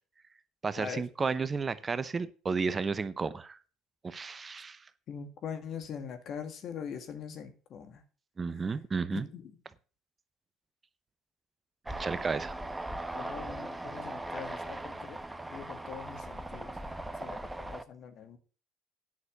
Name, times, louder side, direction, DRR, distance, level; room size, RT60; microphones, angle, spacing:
voice 1, 0.6-3.6 4.0-4.8 8.4-9.3 12.0-12.6, right 4 dB, 30° right, 14 dB, 0.8 m, -32 dB
voice 2, 5.1-8.0 9.1-9.4 13.1-15.2 15.5-16.7 17.2-18.4, left 7 dB, 55° left, 8 dB, 2.0 m, -42 dB
sound 1, 11.9-17.8, right 1 dB, 10° right, 1.0 m, -39 dB
9.6 x 6.4 x 6.7 m, 0.37 s
hypercardioid pair, 70°, 0 cm